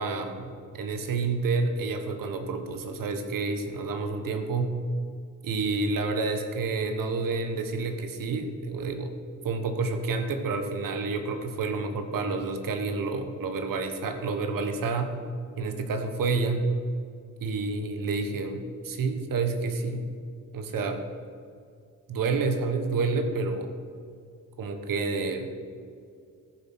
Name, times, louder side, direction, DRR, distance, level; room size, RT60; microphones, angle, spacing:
voice 1, 0.0-4.7 5.4-9.1 9.4-15.1 15.6-16.7 17.4-20.1 20.5-21.0 22.1-23.7 24.6-25.5, right 4 dB, 90° right, 7 dB, 1.3 m, -29 dB
14.5 x 7.2 x 6.1 m, 2.3 s
wide cardioid pair, 155°, 33 cm